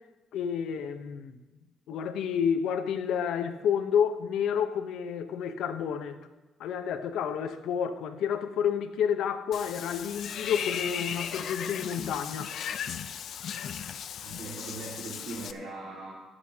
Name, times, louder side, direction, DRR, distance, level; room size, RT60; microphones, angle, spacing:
voice 1, 0.3-1.4 1.9-6.2 6.6-12.5, left 8 dB, 85° left, 0.9 m, -30 dB
Water / Bathtub (filling or washing), 9.5-15.5, left 8 dB, 70° left, 0.6 m, -36 dB
voice 2, 14.2-16.1, right 3 dB, 80° right, 2.3 m, -40 dB
21.5 x 8.2 x 2.9 m
cardioid pair, 90°, 0 cm